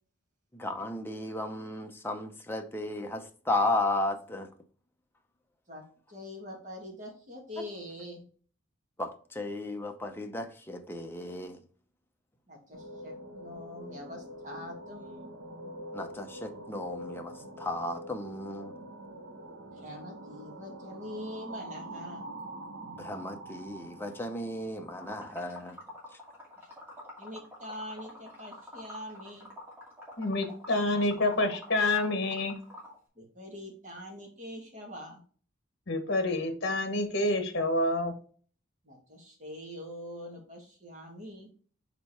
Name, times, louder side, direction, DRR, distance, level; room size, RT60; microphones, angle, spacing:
voice 1, 0.5-4.5 7.6-7.7 9.0-11.6 15.9-18.7 22.9-25.8, left 2 dB, 10° left, 4 dB, 0.7 m, -34 dB
voice 2, 6.1-8.3 12.5-15.3 19.7-22.2 27.2-29.5 33.2-35.2 38.8-41.5, left 1 dB, 40° right, 0 dB, 2.1 m, -44 dB
sound 1, 12.7-25.9, right 1 dB, 65° right, 1.2 m, -45 dB
Liquid, 25.0-33.0, left 1 dB, 10° right, 2.2 m, -47 dB
voice 3, 30.2-32.6 35.9-38.1, left 2 dB, 55° left, 7 dB, 1.3 m, -28 dB
5.1 x 4.5 x 4.3 m, 0.43 s
head